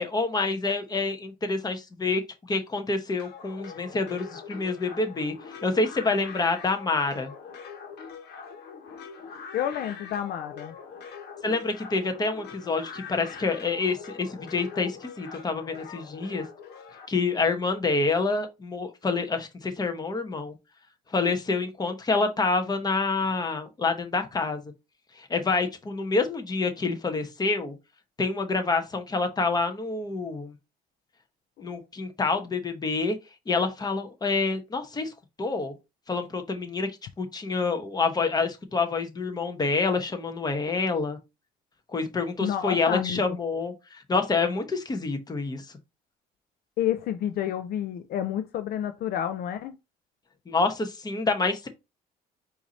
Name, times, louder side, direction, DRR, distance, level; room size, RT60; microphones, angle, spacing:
voice 1, 0.0-2.2 2.5-5.3 5.6-7.3 11.4-16.4 17.1-20.5 21.1-24.6 25.2-27.7 28.2-30.5 31.6-33.2 33.5-35.1 35.4-35.7 36.1-36.9 37.2-41.2 41.9-45.6 50.5-51.7, left 3 dB, 25° left, 1.0 m, -27 dB
sound 1, 3.2-17.1, left 6 dB, 80° left, 1.3 m, -43 dB
voice 2, 9.5-10.7 31.6-31.7 42.4-43.2 46.8-49.8, left 10 dB, 65° left, 0.5 m, -29 dB
4.6 x 2.8 x 4.1 m
cardioid pair, 110°, 17 cm